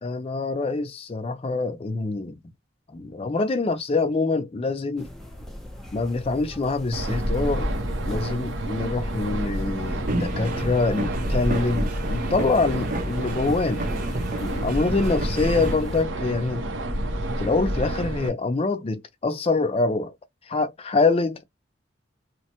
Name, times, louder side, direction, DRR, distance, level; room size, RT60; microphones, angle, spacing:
voice 1, 0.0-2.3 2.9-5.1 5.9-7.7 8.1-13.9 14.4-16.6 17.4-20.1 20.5-21.4, left 3 dB, 30° left, 0.4 m, -25 dB
sound 1, 5.0-16.0, left 1 dB, ahead, 0.7 m, -37 dB
sound 2, 6.9-18.3, right 1 dB, 80° right, 0.8 m, -29 dB
sound 3, 10.1-15.7, right 2 dB, 50° right, 0.7 m, -32 dB
3.0 x 2.1 x 2.8 m
head